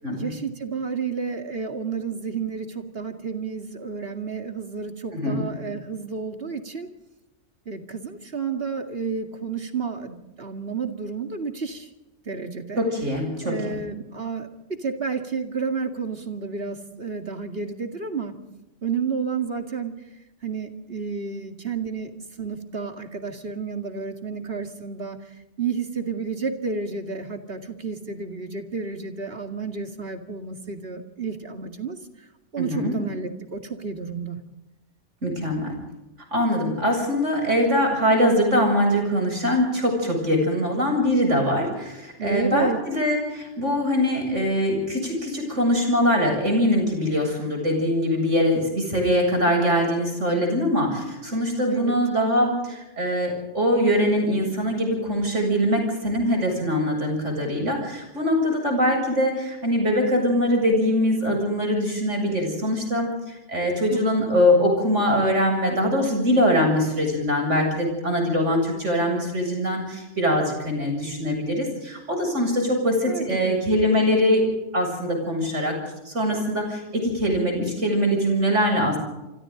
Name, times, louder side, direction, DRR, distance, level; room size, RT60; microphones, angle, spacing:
voice 1, 0.1-6.9 7.7-11.9 12.3-12.8 13.4-18.4 18.8-19.9 20.4-25.2 25.6-32.0 32.5-34.4 42.2-42.8 51.7-52.0 63.9-64.2 73.1-73.6, right 5 dB, 50° right, 5 dB, 2.4 m, -31 dB
voice 2, 5.1-5.4 12.8-13.8 32.6-32.9 35.2-35.7 36.3-75.8 76.0-79.0, equal, 70° right, 2 dB, 8.1 m, -22 dB
27.5 x 25.0 x 4.0 m, 1.0 s
omnidirectional pair, 1.3 m